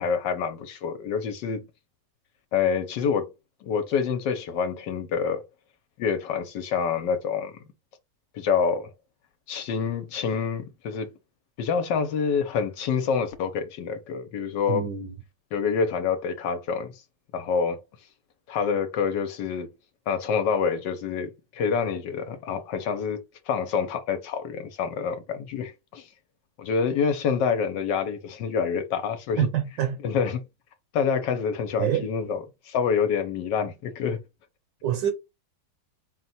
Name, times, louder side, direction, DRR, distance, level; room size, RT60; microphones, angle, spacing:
voice 1, 0.0-1.7 2.5-3.3 3.6-5.4 6.0-7.6 8.3-8.9 9.5-11.1 11.6-14.9 15.5-17.0 17.3-17.8 18.5-19.7 20.1-26.1 26.6-29.5 30.0-30.4 30.9-34.2, left 6 dB, 80° left, 1.3 m, -27 dB
voice 2, 14.7-15.1 29.4-30.0 31.8-32.0 34.8-35.1, right 10 dB, 75° right, 1.3 m, -26 dB
4.3 x 2.2 x 4.1 m
omnidirectional pair, 1.9 m